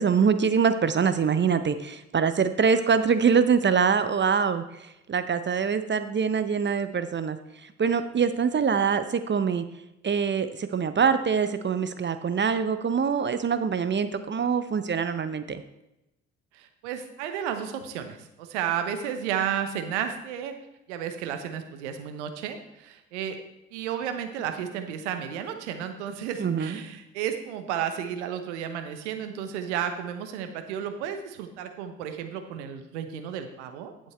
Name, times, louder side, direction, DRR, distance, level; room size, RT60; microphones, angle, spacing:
voice 1, 0.0-4.6 5.1-7.4 7.6-9.7 10.0-15.6 26.4-26.8, right 6 dB, 30° right, 11 dB, 0.8 m, -24 dB
voice 2, 16.5-20.5 20.9-23.4 23.7-33.9, right 9 dB, 80° right, 7 dB, 1.1 m, -32 dB
11.5 x 7.6 x 4.5 m, 0.90 s
hypercardioid pair, 45°, 35 cm